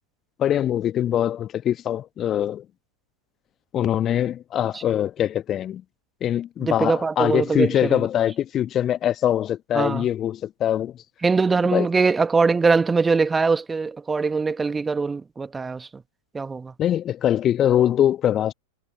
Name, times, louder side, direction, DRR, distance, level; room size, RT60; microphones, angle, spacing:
voice 1, 0.4-2.6 3.7-5.8 6.2-11.0 11.7-11.9 16.8-18.5, left 11 dB, 30° left, 1.2 m, -23 dB
voice 2, 6.6-8.1 9.7-10.1 11.2-15.9 16.3-16.7, right 4 dB, 15° right, 1.2 m, -22 dB
figure-of-eight pair, 90°, 0 cm